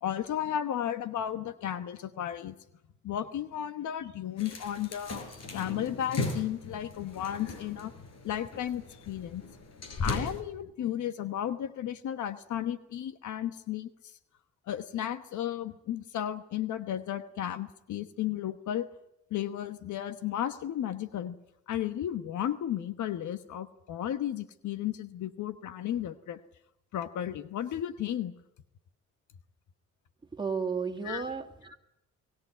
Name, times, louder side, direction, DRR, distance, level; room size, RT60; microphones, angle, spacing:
voice 1, 0.0-2.5 3.0-7.9 8.2-9.4 10.0-14.1 14.7-18.9 19.3-21.4 21.7-26.4 26.9-28.3 31.1-31.2, left 11 dB, 75° left, 11 dB, 1.2 m, -34 dB
sound 1, 4.4-10.4, left 3 dB, 60° left, 5.3 m, -37 dB
voice 2, 30.3-31.8, right 5 dB, 15° right, 3 dB, 2.3 m, -33 dB
23.5 x 16.5 x 9.3 m, 0.84 s
cardioid pair, 90°, 30 cm